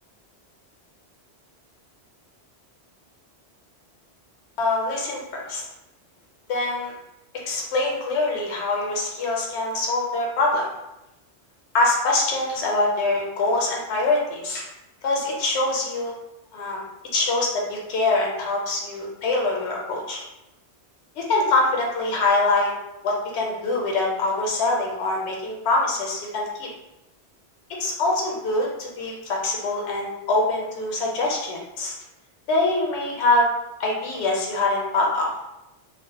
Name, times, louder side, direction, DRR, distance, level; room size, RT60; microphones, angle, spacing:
voice 1, 4.6-5.6 6.5-6.9 7.5-10.7 11.7-14.6 15.0-16.1 16.5-16.8 17.1-20.2 21.2-22.7 23.0-26.7 27.8-31.9 32.5-33.5 33.8-35.3, left 2 dB, 85° left, -1 dB, 0.9 m, -24 dB
2.4 x 2.0 x 2.7 m, 0.90 s
omnidirectional pair, 1.1 m